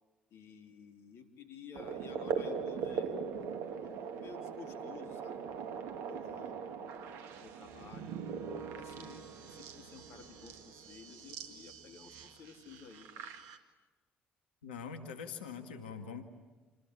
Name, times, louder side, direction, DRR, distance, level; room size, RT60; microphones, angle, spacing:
voice 1, 0.3-3.1 3.8-7.0 7.4-8.2 8.7-13.3, left 6 dB, 65° left, 6 dB, 3.3 m, -53 dB
sound 1, 1.7-13.6, right 6 dB, 70° right, 2.1 m, -41 dB
voice 2, 14.6-16.2, left 6 dB, 85° left, 8 dB, 2.0 m, -43 dB
28.5 x 20.5 x 9.9 m, 1.3 s
hypercardioid pair, 50°, 5 cm